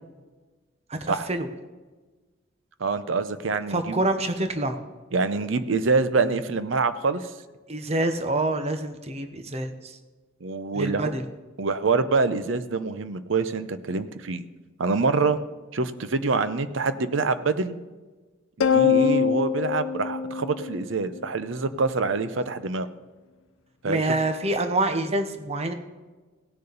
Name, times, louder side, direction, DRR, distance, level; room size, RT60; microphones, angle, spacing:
voice 1, 0.9-1.5 3.7-4.8 7.7-10.0 10.7-11.2 23.8-25.7, right 2 dB, 35° right, 8 dB, 0.9 m, -26 dB
voice 2, 2.8-4.0 5.1-7.2 10.4-11.1 11.6-14.4 14.8-15.4 15.7-17.8 18.6-22.9 23.8-24.1, right 4 dB, 75° right, 12 dB, 0.7 m, -25 dB
sound 1, 18.6-21.2, left 6 dB, 80° left, 0.6 m, -23 dB
16.5 x 6.7 x 4.0 m, 1.3 s
head